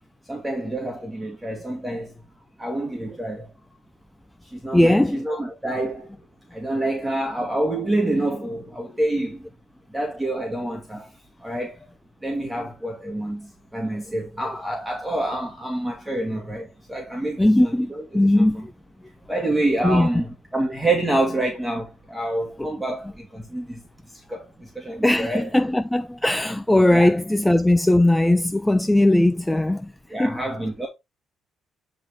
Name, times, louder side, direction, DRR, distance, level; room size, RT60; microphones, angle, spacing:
voice 1, 0.3-2.1 2.6-3.5 4.4-6.1 6.5-9.5 9.9-11.1 11.4-11.9 12.2-18.4 19.3-23.8 24.1-25.5 26.9-27.1 30.1-30.9, right 1 dB, 10° right, 2.1 m, -27 dB
voice 2, 4.7-5.2 17.4-17.9 18.1-18.7 19.8-20.1 25.0-29.9 30.2-30.4, left 1 dB, 10° left, 0.4 m, -19 dB
9.9 x 3.7 x 3.6 m
cardioid pair, 90°, 0 cm